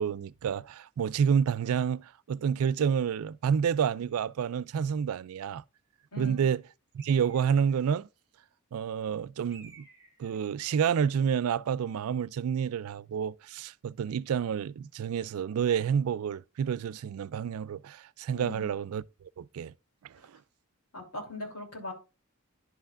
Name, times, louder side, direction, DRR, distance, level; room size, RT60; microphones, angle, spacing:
voice 1, 0.0-5.6 6.2-6.6 6.9-8.1 8.7-9.9 10.2-19.7 20.0-20.4, right 7 dB, 75° right, 0.3 m, -29 dB
voice 2, 6.1-6.4 18.3-18.7 20.9-21.9, left 2 dB, 75° left, 3.0 m, -40 dB
Bird, 7.0-7.8 9.5-10.4, right 5 dB, 15° right, 2.3 m, -54 dB
11.0 x 5.6 x 2.5 m
head